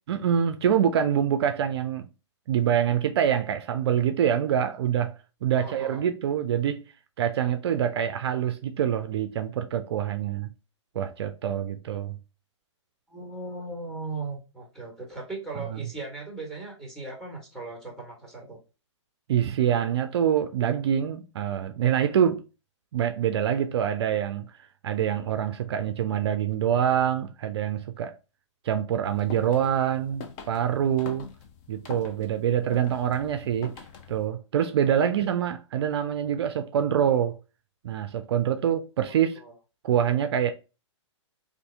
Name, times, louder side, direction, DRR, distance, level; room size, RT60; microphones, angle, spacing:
voice 1, 0.1-2.1 2.5-6.8 7.2-10.5 11.0-12.2 19.3-22.4 22.9-24.5 24.8-28.1 28.6-31.3 31.7-33.7 34.1-37.4 37.8-39.4 39.8-40.5, right 9 dB, 55° right, 0.4 m, -25 dB
voice 2, 5.5-6.0 13.1-18.6 39.1-39.5, right 3 dB, 5° left, 1.3 m, -38 dB
sound 1, 29.0-34.3, left 6 dB, 35° left, 0.5 m, -44 dB
2.7 x 2.5 x 3.3 m
hypercardioid pair, 125°, 16 cm